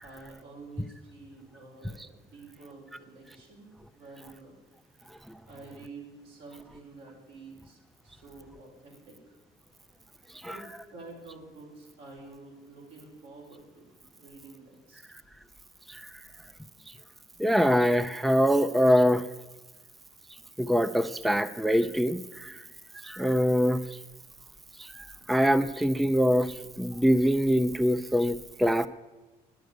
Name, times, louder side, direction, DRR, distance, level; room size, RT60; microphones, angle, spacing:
voice 1, 0.0-4.6 5.5-9.4 10.4-15.0, right 3 dB, 85° right, -2 dB, 4.8 m, -49 dB
voice 2, 17.4-19.3 20.6-22.6 23.0-24.0 24.8-28.9, equal, ahead, 13 dB, 0.5 m, -24 dB
10.0 x 8.0 x 9.3 m, 1.1 s
cardioid pair, 110°, 17 cm